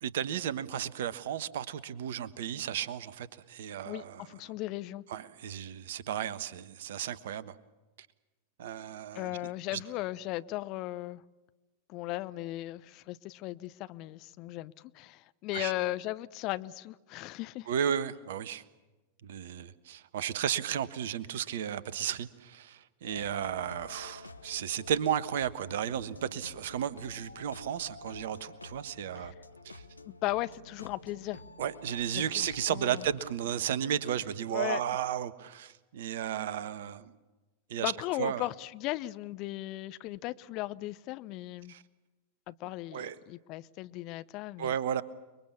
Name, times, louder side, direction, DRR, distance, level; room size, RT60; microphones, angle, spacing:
voice 1, 0.0-4.2 5.1-7.5 8.6-9.3 9.7-9.8 15.5-15.7 17.7-18.6 19.2-29.3 29.6-29.8 31.6-37.1 37.7-37.9 38.2-38.4 41.7-41.8 42.9-43.1 44.6-45.0, right 9 dB, 55° right, 1.3 m, -34 dB
voice 2, 3.8-5.0 9.1-11.2 11.9-17.7 29.2-29.3 30.1-31.4 32.1-33.1 34.5-34.8 37.8-41.7 42.5-44.7, left 17 dB, 40° left, 0.9 m, -37 dB
sound 1, 23.1-33.3, left 3 dB, 85° left, 1.0 m, -49 dB
30.0 x 22.0 x 7.2 m
figure-of-eight pair, 90°, 0 cm